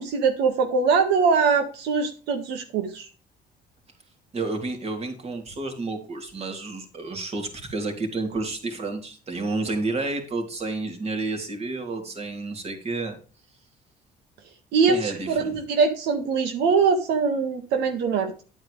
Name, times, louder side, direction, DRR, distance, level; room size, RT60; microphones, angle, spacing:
voice 1, 0.0-3.1 14.7-18.4, right 5 dB, 85° right, 6 dB, 1.7 m, -22 dB
voice 2, 4.3-13.2 14.9-15.6, right 3 dB, 40° right, 4 dB, 3.2 m, -30 dB
10.5 x 8.7 x 3.3 m, 0.37 s
cardioid pair, 110°, 17 cm